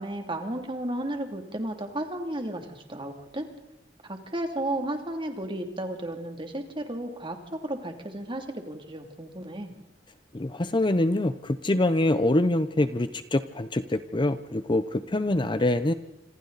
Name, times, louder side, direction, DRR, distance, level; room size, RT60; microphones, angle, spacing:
voice 1, 0.0-3.5 4.0-9.7, right 1 dB, 25° right, 5 dB, 2.7 m, -33 dB
voice 2, 10.3-15.9, left 1 dB, 25° left, 12 dB, 0.7 m, -25 dB
27.0 x 26.5 x 4.1 m, 1.0 s
head